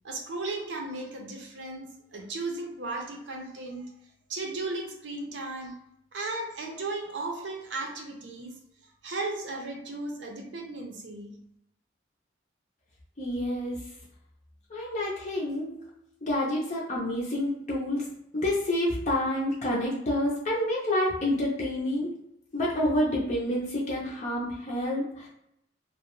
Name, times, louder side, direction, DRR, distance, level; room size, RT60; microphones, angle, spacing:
voice 1, 0.0-3.9 4.3-5.8 6.1-8.6 8.8-11.4, right 2 dB, 75° right, 1 dB, 0.6 m, -36 dB
voice 2, 13.2-13.8 14.7-15.8 16.2-18.0 18.4-22.1 22.5-25.3, left 1 dB, 40° left, -5 dB, 0.4 m, -28 dB
2.5 x 2.1 x 2.9 m, 0.77 s
head